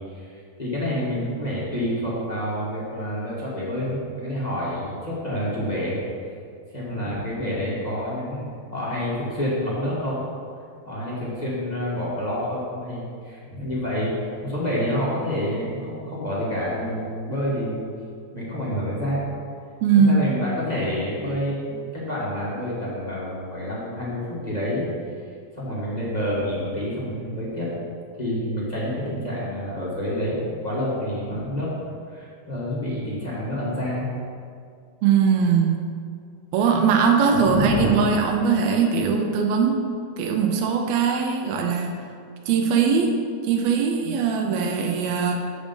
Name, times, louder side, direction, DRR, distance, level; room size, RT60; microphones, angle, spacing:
voice 1, 0.1-6.0 6.7-10.3 10.8-17.9 18.3-19.2 19.9-24.9 25.5-27.7 28.2-31.7 32.1-34.1 37.3-37.9, equal, 30° left, -8 dB, 0.8 m, -28 dB
voice 2, 19.8-20.3 35.0-35.7 36.5-39.8 40.2-41.9 42.5-43.1 43.4-45.3, right 6 dB, 75° right, 2 dB, 1.8 m, -20 dB
7.4 x 5.1 x 5.2 m, 2.2 s
omnidirectional pair, 3.3 m